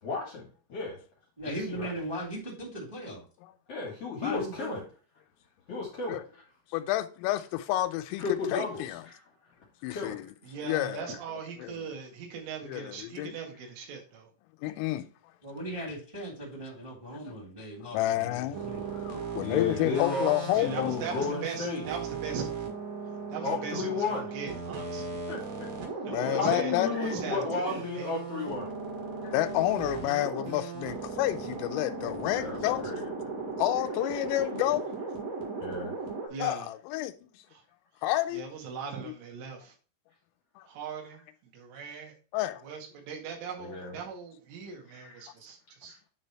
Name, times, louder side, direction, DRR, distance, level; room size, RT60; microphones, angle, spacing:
voice 1, 0.0-1.0 1.4-1.9 3.7-4.9 5.7-6.4 8.2-9.2 9.9-10.2 19.2-21.9 23.4-24.3 25.3-25.7 26.3-28.7 32.4-33.1 35.6-36.0 43.6-44.0 44.9-45.2, left 4 dB, 75° left, 1.4 m, -34 dB
voice 2, 1.4-3.2 4.2-4.8 15.4-18.9, right 1 dB, 35° right, 0.5 m, -38 dB
voice 3, 6.7-8.2 8.5-9.0 9.8-10.3 10.6-11.2 11.6-11.9 12.6-13.4 14.6-15.1 17.3-17.4 17.9-18.7 18.9-20.9 26.1-26.9 29.2-32.9 33.6-34.8 35.6-35.7 36.4-37.3 38.0-38.4 40.6-40.7 42.3-42.6, left 15 dB, 90° left, 3.2 m, -29 dB
voice 4, 10.4-14.3 19.7-20.0 20.5-22.6 23.3-25.2 26.1-28.1 36.3-36.7 37.5-37.6 38.3-39.7 40.6-41.2 41.5-42.1 42.6-46.0, right 6 dB, 75° right, 4.1 m, -40 dB
sound 1, 18.5-36.3, right 4 dB, 55° right, 2.9 m, -37 dB
10.0 x 3.4 x 4.4 m
omnidirectional pair, 5.8 m